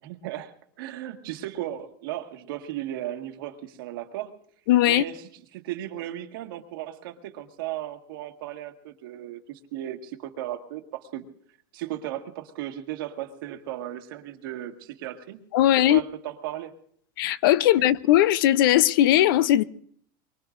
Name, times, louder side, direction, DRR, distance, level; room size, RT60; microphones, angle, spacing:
voice 1, 0.0-4.3 4.8-5.2 5.5-11.2 11.7-16.7 17.8-17.9, right 13 dB, 80° right, 1.8 m, -36 dB
voice 2, 4.7-5.0 15.5-16.0 17.2-19.6, left 13 dB, 70° left, 0.7 m, -19 dB
24.0 x 23.0 x 2.6 m
supercardioid pair, 145°, 12 cm